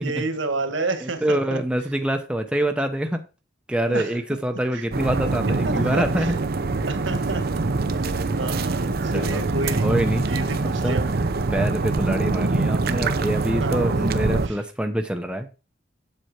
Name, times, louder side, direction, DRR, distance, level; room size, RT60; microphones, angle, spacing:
voice 1, 0.0-1.6 3.9-4.4 4.7-4.8 5.6-6.4 6.9-7.4 8.4-9.9 10.3-11.3 13.6-14.1 14.4-14.6, right 2 dB, 70° right, 7 dB, 1.7 m, -30 dB
voice 2, 1.0-3.3 3.7-6.4 9.1-9.5 9.8-10.3 10.6-11.0 11.5-15.5, right 1 dB, 5° right, 5 dB, 0.8 m, -25 dB
sound 1, 4.9-14.5, right 3 dB, 50° right, 0.7 m, -24 dB
7.9 x 7.7 x 4.4 m, 0.32 s
head